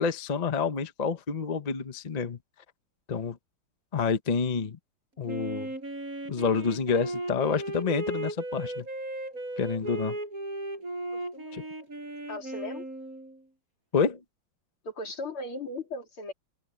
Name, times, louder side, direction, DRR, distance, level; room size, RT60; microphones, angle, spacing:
voice 1, 0.0-2.4 3.1-3.4 3.9-4.8 5.2-5.7 6.3-8.8 9.6-10.2 11.5-11.6 13.9-14.2, left 5 dB, 40° left, 0.5 m, -28 dB
Wind instrument woodwind instrument, 5.3-13.4, right 1 dB, 40° right, 5.8 m, -36 dB
voice 2, 11.1-11.9 12.3-12.9 14.8-16.3, left 2 dB, 85° left, 4.7 m, -38 dB
omnidirectional pair, 2.3 m